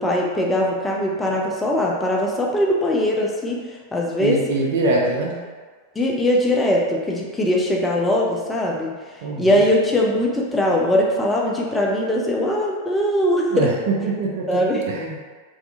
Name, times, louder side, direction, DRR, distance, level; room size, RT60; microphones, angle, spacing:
voice 1, 0.0-4.4 6.0-8.9 9.4-13.7 14.5-14.9, left 1 dB, 10° left, -2 dB, 0.4 m, -21 dB
voice 2, 4.2-5.3 9.2-9.5 13.5-15.1, right 2 dB, 55° right, -1 dB, 0.4 m, -23 dB
2.3 x 2.2 x 2.6 m, 1.5 s
figure-of-eight pair, 90°, 0 cm